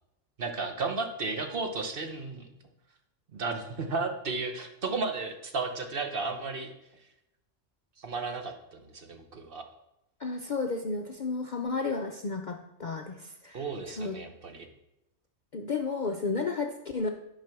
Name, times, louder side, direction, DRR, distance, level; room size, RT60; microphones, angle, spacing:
voice 1, 0.4-2.5 3.3-6.7 8.0-9.6 13.5-14.7, right 3 dB, 50° right, 5 dB, 1.1 m, -34 dB
voice 2, 10.2-13.6 14.0-14.2 15.5-17.1, left 4 dB, 50° left, 4 dB, 0.6 m, -32 dB
10.5 x 4.8 x 5.9 m, 0.88 s
omnidirectional pair, 1.3 m